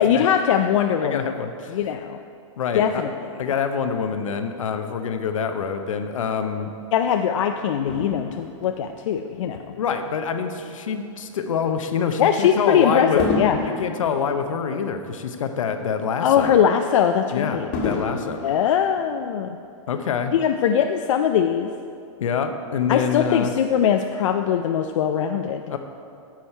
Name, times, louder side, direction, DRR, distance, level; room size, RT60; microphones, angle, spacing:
voice 1, 0.0-1.3 1.7-2.2 2.7-3.5 6.9-9.8 12.2-13.6 16.2-17.7 18.4-19.6 20.3-21.7 22.9-25.6, left 8 dB, 70° left, 6 dB, 0.4 m, -21 dB
voice 2, 1.0-1.8 2.6-3.0 3.4-6.7 9.8-13.2 13.6-16.6 17.3-18.4 19.9-20.3 22.2-23.5 25.7-25.8, left 6 dB, 85° left, 7 dB, 0.8 m, -26 dB
Fireworks, 7.9-10.4 11.1-11.3 13.2-15.7 16.1-16.2 17.7-19.6 20.3-20.4, left 3 dB, 45° left, 1.5 m, -32 dB
10.5 x 6.4 x 4.3 m, 2.5 s
hypercardioid pair, 145°, 17 cm